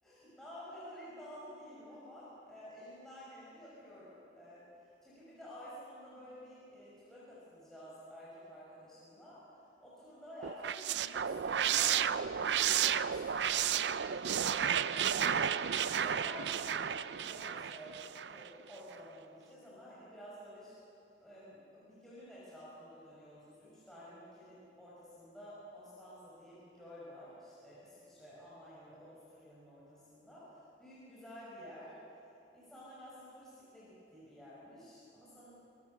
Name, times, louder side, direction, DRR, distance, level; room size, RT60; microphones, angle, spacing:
voice 1, 0.0-4.7 5.0-9.4 9.8-14.4 14.9-15.5 15.9-18.0 18.3-20.7 21.2-31.9 32.5-35.5, equal, 5° left, -9 dB, 5.9 m, -52 dB
sound 1, 10.4-18.5, right 8 dB, 80° right, 0.5 m, -32 dB
24.5 x 22.0 x 6.8 m, 2.7 s
head